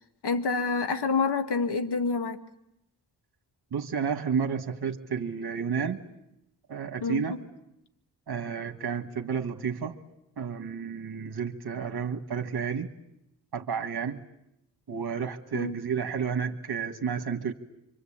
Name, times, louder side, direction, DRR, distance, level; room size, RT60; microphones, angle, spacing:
voice 1, 0.2-2.4 7.0-7.3 15.5-15.8, left 4 dB, 80° left, 2.1 m, -27 dB
voice 2, 3.7-6.0 6.7-7.3 8.3-10.0 10.4-12.9 13.5-14.2 14.9-17.5, right 6 dB, 70° right, 1.7 m, -31 dB
26.5 x 25.0 x 8.8 m
wide cardioid pair, 105°, 40 cm